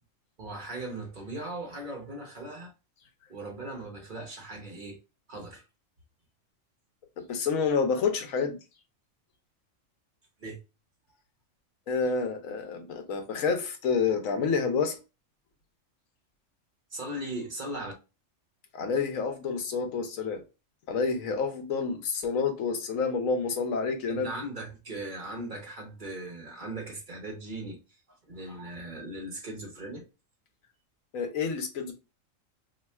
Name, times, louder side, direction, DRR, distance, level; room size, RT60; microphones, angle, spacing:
voice 1, 0.4-2.7 3.3-5.0 5.3-5.6 10.4-10.6 11.1-11.2 16.9-17.9 24.1-30.1, right 1 dB, 45° right, 0.9 m, -39 dB
voice 2, 7.3-8.6 11.9-15.0 18.7-20.4 20.9-24.3 31.1-31.9, left 5 dB, 85° left, 1.1 m, -28 dB
2.8 x 2.3 x 4.1 m
omnidirectional pair, 1.3 m